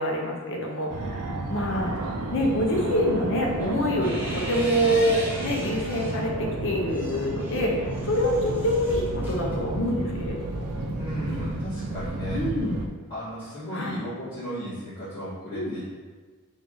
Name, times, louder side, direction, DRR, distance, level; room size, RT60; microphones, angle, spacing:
voice 1, 0.0-1.9 2.3-10.7 12.3-12.9 13.7-14.0 15.5-15.7, equal, 60° left, 0 dB, 0.6 m, -26 dB
Fixed-wing aircraft airplane, 0.9-12.9, right 2 dB, 90° right, 0.4 m, -32 dB
sound 1, 3.6-6.3 6.7-10.1, equal, 10° right, 0.7 m, -38 dB
voice 2, 11.0-12.4 13.1-16.0, equal, 20° left, -17 dB, 1.5 m, -35 dB
3.5 x 2.4 x 3.7 m, 1.4 s
head